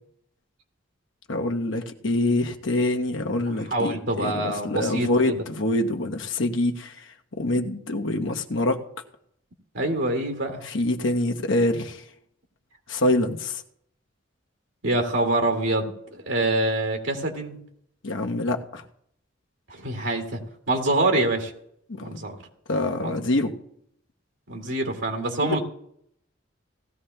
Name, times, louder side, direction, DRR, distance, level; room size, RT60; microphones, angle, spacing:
voice 1, 1.3-6.9 7.3-8.8 10.6-12.0 12.9-13.6 18.0-18.8 21.9-22.2 22.7-23.5 25.4-25.6, left 1 dB, 70° left, 4 dB, 1.0 m, -25 dB
voice 2, 3.7-5.4 9.7-10.6 14.8-17.6 19.7-20.4 20.7-21.5 22.0-22.4 23.0-23.2 24.5-25.6, right 2 dB, 70° right, 2 dB, 2.1 m, -25 dB
18.0 x 14.5 x 2.2 m, 0.72 s
head